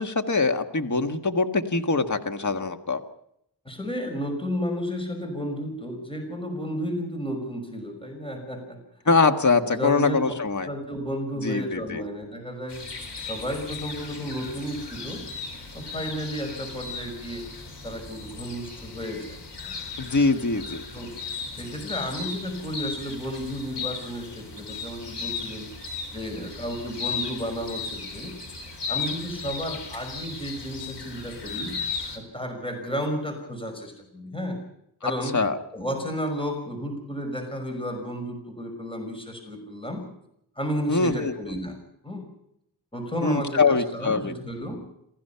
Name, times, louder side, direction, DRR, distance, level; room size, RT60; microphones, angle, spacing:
voice 1, 0.0-3.0 9.0-10.7 11.4-12.0 20.0-20.8 35.0-35.6 40.9-41.3 43.2-44.3, left 4 dB, 45° left, 6 dB, 1.7 m, -23 dB
voice 2, 3.7-8.8 9.7-10.2 10.7-12.8 13.3-15.2 15.7-17.4 17.8-19.4 20.9-21.1 21.5-25.7 26.1-28.4 28.9-31.8 32.1-34.6 35.0-35.3 35.7-40.0 40.6-41.8 42.0-42.2 42.9-44.8, equal, 15° left, 4 dB, 5.7 m, -32 dB
sound 1, 12.7-32.2, left 4 dB, 85° left, 4.5 m, -36 dB
28.0 x 16.0 x 5.7 m, 0.75 s
wide cardioid pair, 90°, 41 cm